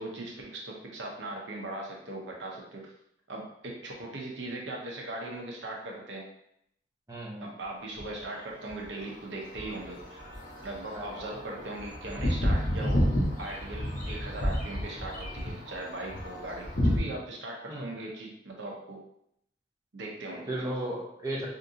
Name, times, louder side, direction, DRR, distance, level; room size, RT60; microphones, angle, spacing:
voice 1, 0.0-2.9 3.3-6.2 7.4-10.2 10.6-13.1 13.4-19.0 19.9-20.5, right 2 dB, 80° right, -1 dB, 0.7 m, -39 dB
voice 2, 7.1-7.5 10.9-11.1 17.7-18.0 20.5-21.5, right 1 dB, 20° right, -4 dB, 0.7 m, -35 dB
sound 1, 8.0-8.2 8.7-17.0, equal, 50° left, 0.9 m, -31 dB
3.5 x 2.6 x 2.7 m, 0.75 s
head